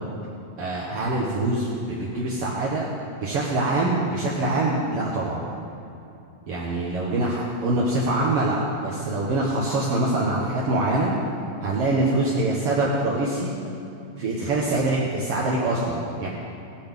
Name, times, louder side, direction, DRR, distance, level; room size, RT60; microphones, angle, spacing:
voice 1, 0.6-2.9 3.2-5.4 6.5-11.1 11.6-13.5 14.2-16.3, right 2 dB, 65° right, -5 dB, 1.5 m, -24 dB
19.0 x 7.9 x 3.6 m, 2.8 s
omnidirectional pair, 4.3 m